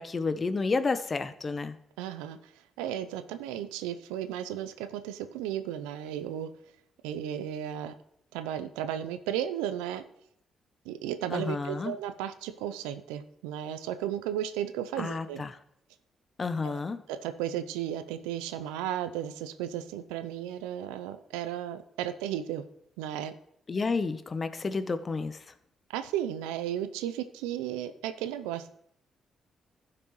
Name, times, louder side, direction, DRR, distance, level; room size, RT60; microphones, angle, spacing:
voice 1, 0.0-1.8 11.3-11.9 15.0-15.6 16.4-17.0 23.7-25.4, left 4 dB, 40° left, 12 dB, 0.8 m, -30 dB
voice 2, 2.0-2.4 2.8-6.5 7.0-7.9 8.3-10.0 10.9-15.4 16.6-16.8 17.1-22.6 23.0-23.3 25.9-28.7, right 11 dB, 80° right, 11 dB, 0.5 m, -34 dB
15.0 x 6.0 x 3.1 m, 0.72 s
hypercardioid pair, 45°, 0 cm